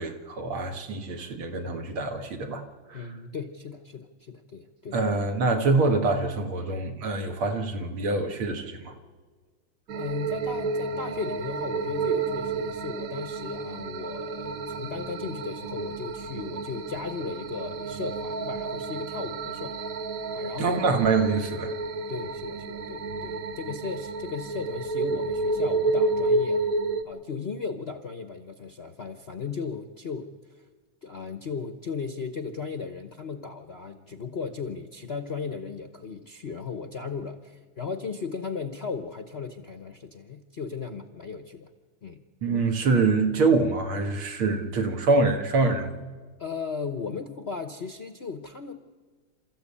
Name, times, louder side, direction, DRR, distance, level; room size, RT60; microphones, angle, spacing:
voice 1, 0.0-3.0 4.9-8.9 20.6-21.7 42.4-46.0, right 3 dB, 80° right, 4 dB, 2.6 m, -25 dB
voice 2, 2.9-5.0 9.9-19.9 20.3-20.8 22.1-26.6 27.0-30.7 31.0-41.7 42.0-42.2 46.4-48.7, left 5 dB, 45° left, 8 dB, 0.8 m, -36 dB
sound 1, 9.9-27.0, right 3 dB, 55° right, 1.1 m, -30 dB
28.5 x 14.0 x 8.6 m, 1.5 s
omnidirectional pair, 2.3 m